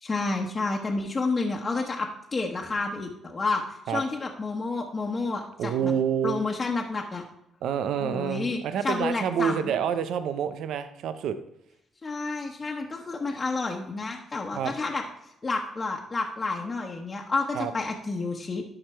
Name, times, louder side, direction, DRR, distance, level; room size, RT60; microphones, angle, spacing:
voice 1, 0.0-5.9 6.2-7.2 8.0-9.7 12.0-15.0 15.4-18.6, left 3 dB, 30° left, 0 dB, 1.1 m, -30 dB
voice 2, 5.6-6.4 7.6-11.4 14.5-14.7 17.5-17.7, right 8 dB, 80° right, 11 dB, 0.6 m, -28 dB
12.0 x 4.9 x 4.5 m, 0.80 s
cardioid pair, 90°, 0 cm